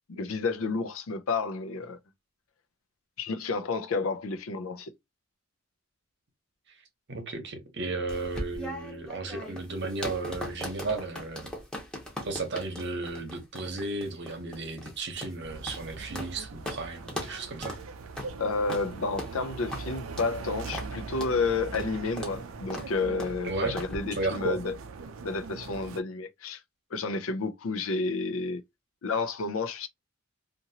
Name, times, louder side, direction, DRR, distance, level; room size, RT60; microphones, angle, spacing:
voice 1, 0.1-2.0 3.2-4.9 18.4-24.7 25.2-26.6 26.9-28.6 29.0-29.9, left 4 dB, 75° left, 0.5 m, -30 dB
voice 2, 7.1-11.5 12.2-17.8 23.4-23.8 24.1-24.6, right 3 dB, 55° right, 0.9 m, -34 dB
sound 1, 8.1-16.3 16.6-16.8 17.1-17.3 17.6-17.8 18.2-18.3 18.7-18.9 19.2-19.3 19.7-19.8 20.2-20.4 20.7-20.9 21.2-21.3 21.7-21.9 22.2-22.4 22.7-22.9 23.2-23.4 23.8-24.0, equal, 5° left, 0.8 m, -39 dB
sound 2, 15.4-26.0, right 4 dB, 75° right, 0.4 m, -41 dB
2.9 x 2.5 x 2.7 m
head